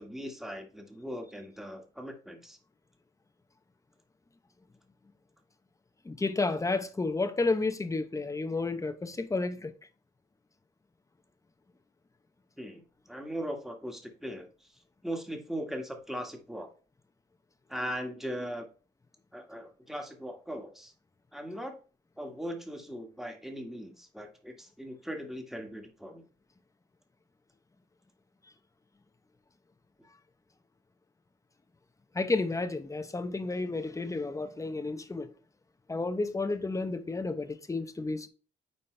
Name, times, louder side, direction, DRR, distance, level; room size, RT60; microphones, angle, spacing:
voice 1, 0.0-2.6 12.6-12.8 13.1-14.5 15.0-16.7 17.7-18.7 19.3-20.9 21.3-21.7 22.2-26.2, equal, ahead, 1.7 m, -39 dB
voice 2, 6.0-9.7 32.1-35.3 35.9-38.3, left 3 dB, 15° left, 0.8 m, -31 dB
9.7 x 4.1 x 3.3 m
cardioid pair, 90°, 20 cm